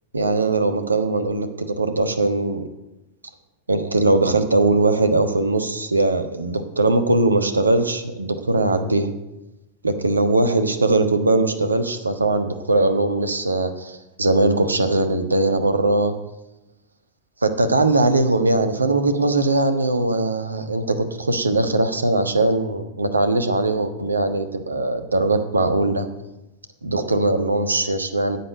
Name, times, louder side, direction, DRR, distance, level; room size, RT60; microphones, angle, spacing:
voice 1, 0.1-2.6 3.7-9.1 9.8-16.1 17.4-26.1 26.8-28.4, right 2 dB, 80° right, 8 dB, 1.3 m, -20 dB
9.9 x 8.8 x 8.4 m, 0.96 s
figure-of-eight pair, 90°, 0 cm